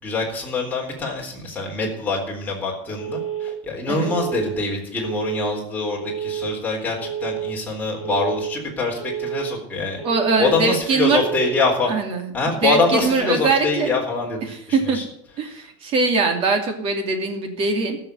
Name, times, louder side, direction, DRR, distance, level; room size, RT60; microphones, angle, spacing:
voice 1, 0.0-10.0 10.4-11.9 12.3-15.0, left 3 dB, 10° left, -2 dB, 4.0 m, -24 dB
Telephone, 3.0-3.5 4.0-4.5 5.0-5.5 6.0-6.5 7.0-7.5 8.0-8.5 9.0-9.5 10.0-10.5 11.0-11.5, right 9 dB, 30° left, 4.3 m, -29 dB
voice 2, 10.0-11.2 11.9-13.9 14.5-15.0 15.4-18.0, right 4 dB, 35° right, 4 dB, 2.7 m, -22 dB
14.0 x 6.9 x 9.4 m, 0.72 s
supercardioid pair, 165°, 16 cm